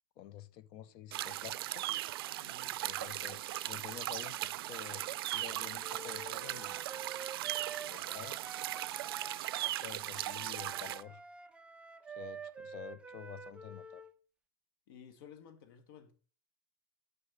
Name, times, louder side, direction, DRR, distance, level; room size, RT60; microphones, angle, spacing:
voice 1, 0.2-1.8 2.8-6.8 7.8-8.4 9.8-11.2 12.1-14.0, left 11 dB, 45° left, 0.7 m, -49 dB
sound 1, 1.1-11.0, right 15 dB, 80° right, 0.4 m, -38 dB
voice 2, 2.4-2.8 14.9-16.1, left 7 dB, 70° left, 1.7 m, -55 dB
Wind instrument woodwind instrument, 5.8-14.2, right 5 dB, 10° right, 0.5 m, -48 dB
6.7 x 5.7 x 6.9 m
supercardioid pair, 140°, 12 cm